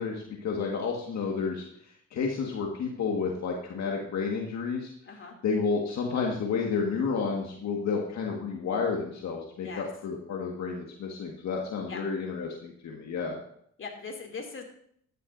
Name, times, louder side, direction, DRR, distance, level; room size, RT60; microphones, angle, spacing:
voice 1, 0.0-1.6 2.1-4.9 5.4-13.4, left 5 dB, 65° left, 0 dB, 1.8 m, -31 dB
voice 2, 5.1-5.4 9.6-9.9 11.9-12.0 13.8-14.6, left 4 dB, 45° left, 1 dB, 2.7 m, -40 dB
13.5 x 11.0 x 2.7 m, 0.66 s
cardioid pair, 90°, 30 cm